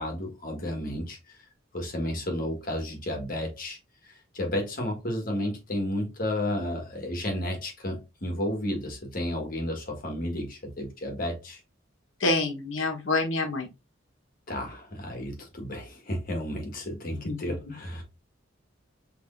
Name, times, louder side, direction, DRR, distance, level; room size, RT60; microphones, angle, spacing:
voice 1, 0.0-1.4 1.7-3.8 4.0-11.6 14.5-18.0, left 1 dB, 45° left, 1.5 m, -32 dB
voice 2, 12.2-13.7 17.2-17.6, left 2 dB, 75° left, 1.2 m, -27 dB
6.0 x 3.3 x 2.5 m
head